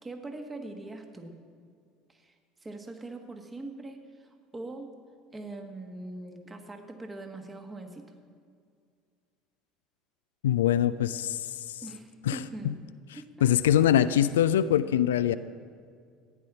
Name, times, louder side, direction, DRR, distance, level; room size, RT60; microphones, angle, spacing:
voice 1, 0.0-1.4 2.1-2.3 2.6-5.0 5.3-8.1 11.8-12.8 13.1-13.9, right 2 dB, 20° right, 5 dB, 1.5 m, -42 dB
voice 2, 10.4-11.8 12.3-12.4 13.4-15.3, left 10 dB, 70° left, 13 dB, 0.3 m, -23 dB
14.5 x 9.9 x 6.2 m, 2.2 s
figure-of-eight pair, 65°, 0 cm